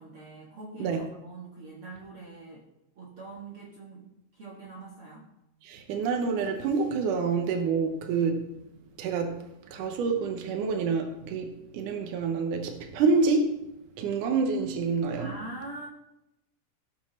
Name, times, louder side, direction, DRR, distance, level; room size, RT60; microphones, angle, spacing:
voice 1, 0.0-2.7 3.0-5.3 15.2-15.9, right 2 dB, 50° right, 2.0 m, -43 dB
voice 2, 5.6-8.5 9.0-13.6 14.0-15.3, right 4 dB, 70° right, 2.5 m, -27 dB
17.5 x 6.0 x 4.4 m
omnidirectional pair, 4.0 m